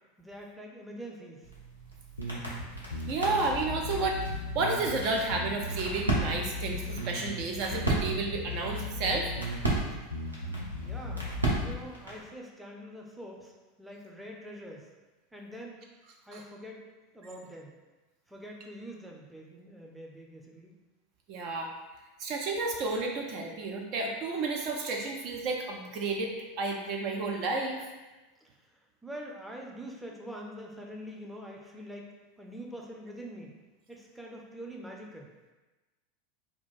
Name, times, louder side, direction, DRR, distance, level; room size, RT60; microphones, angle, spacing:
voice 1, 0.2-1.5 10.8-11.3 11.6-13.5 13.8-14.9 15.3-15.8 16.2-16.9 17.1-17.8 18.3-20.7 28.4-33.5 33.9-35.3, equal, 5° right, -1 dB, 0.6 m, -44 dB
sound 1, 1.4-12.3, right 2 dB, 90° right, 0.8 m, -36 dB
sound 2, 2.2-11.8, left 2 dB, 90° left, 0.4 m, -37 dB
voice 2, 3.1-4.2 4.5-9.3 16.3-16.4 21.3-21.7 22.2-27.9, right 3 dB, 50° right, 1 dB, 0.5 m, -31 dB
2.9 x 2.3 x 4.2 m, 1.1 s
figure-of-eight pair, 85°, 0 cm